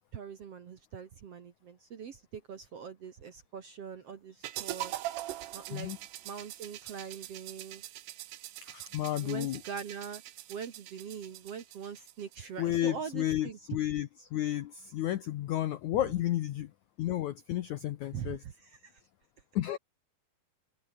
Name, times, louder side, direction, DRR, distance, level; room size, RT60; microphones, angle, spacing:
voice 1, 0.0-4.9 5.5-5.9 6.2-7.8 9.2-10.2 10.5-13.6 18.1-18.9, right 7 dB, 55° right, 1.8 m, -42 dB
sound 1, 4.4-12.5, right 15 dB, 90° right, 3.4 m, -43 dB
voice 2, 8.6-9.6 12.6-16.7 17.0-18.4 19.6-19.8, left 13 dB, 75° left, 1.7 m, -32 dB
omnidirectional pair, 4.6 m